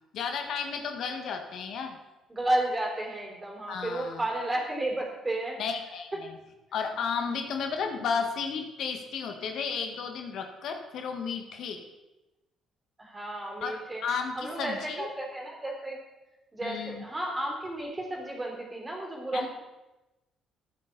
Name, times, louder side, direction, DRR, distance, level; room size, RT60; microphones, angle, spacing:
voice 1, 0.1-2.0 3.7-4.3 5.6-6.4 6.7-11.8 13.6-15.1 16.6-17.0 19.3-19.5, left 6 dB, 70° left, 5 dB, 1.4 m, -33 dB
voice 2, 2.3-5.6 13.0-14.0 14.4-16.0 16.5-19.5, right 1 dB, 20° right, 0 dB, 3.9 m, -32 dB
14.5 x 8.6 x 4.0 m, 1.0 s
cardioid pair, 85°, 0 cm